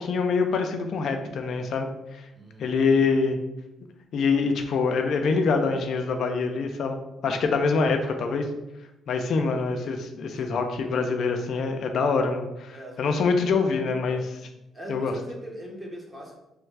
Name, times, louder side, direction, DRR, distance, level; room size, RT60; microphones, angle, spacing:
voice 1, 0.0-2.3 2.6-3.4 4.1-7.0 7.2-8.5 9.1-14.2 14.9-15.1, left 4 dB, 65° left, 5 dB, 0.4 m, -25 dB
voice 2, 2.4-3.0 12.7-13.3 14.1-14.4 14.7-16.3, right 1 dB, 20° right, -1 dB, 0.8 m, -41 dB
3.1 x 2.3 x 3.3 m, 0.93 s
cardioid pair, 90°, 0 cm